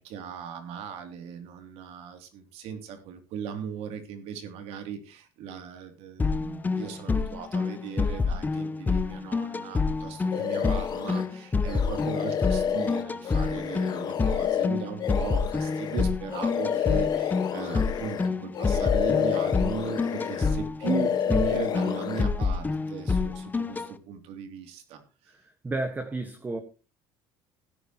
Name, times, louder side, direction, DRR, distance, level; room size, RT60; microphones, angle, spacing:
voice 1, 0.0-25.3, right 7 dB, 70° right, 3.1 m, -38 dB
sound 1, 6.2-23.9, left 4 dB, 15° left, 0.8 m, -28 dB
sound 2, 10.3-11.3 11.7-18.3 18.5-20.5 20.8-22.2, left 9 dB, 40° left, 1.1 m, -29 dB
voice 2, 25.6-26.6, right 2 dB, 15° right, 1.6 m, -31 dB
17.0 x 10.5 x 3.1 m
cardioid pair, 120°, 11 cm